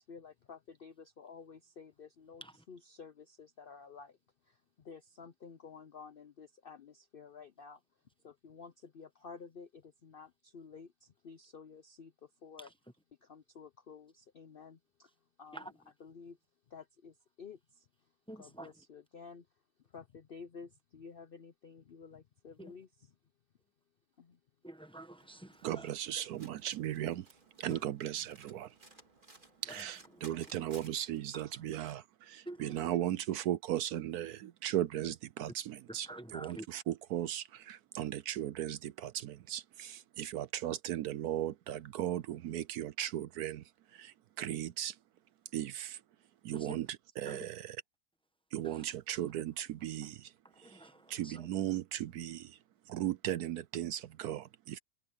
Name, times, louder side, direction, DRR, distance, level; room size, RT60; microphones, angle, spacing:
voice 1, 0.0-4.2 4.4-7.8 8.2-12.7 13.2-15.1 15.4-15.7 16.0-16.4 16.7-18.1 18.4-19.5 19.9-22.9 24.2-24.4, left 5 dB, 70° left, 0.5 m, -52 dB
voice 2, 18.3-18.7 22.6-22.7 24.6-25.9 27.7-27.9 29.7-30.7 31.3-31.6 32.4-32.9 35.9-36.7 46.5-46.8 47.3-47.4 48.6-48.8 50.5-51.5, right 1 dB, 5° left, 0.8 m, -49 dB
Domestic sounds home sounds, 25.2-31.2, right 2 dB, 30° right, 3.1 m, -59 dB
voice 3, 25.6-27.3 27.6-28.7 29.6-45.0 45.5-46.0 46.4-46.9 47.2-47.8 48.5-52.6 52.9-54.8, right 12 dB, 70° right, 1.0 m, -37 dB
omnidirectional pair, 1.8 m